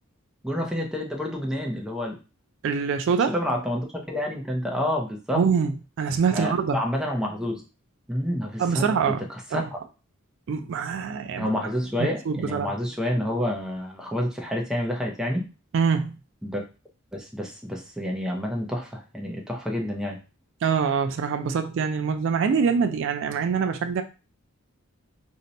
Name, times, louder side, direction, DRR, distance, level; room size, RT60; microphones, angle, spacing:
voice 1, 0.4-2.2 3.3-5.4 6.3-7.6 8.1-8.9 9.3-9.8 11.4-15.5 16.4-16.6 17.1-20.2, left 1 dB, 5° right, 0.5 m, -29 dB
voice 2, 2.6-3.4 5.3-5.7 6.0-6.8 8.6-9.2 9.5-9.7 10.5-11.5 12.0-12.7 15.7-16.2 20.6-24.0, right 6 dB, 60° right, 0.3 m, -24 dB
2.7 x 2.2 x 3.9 m
head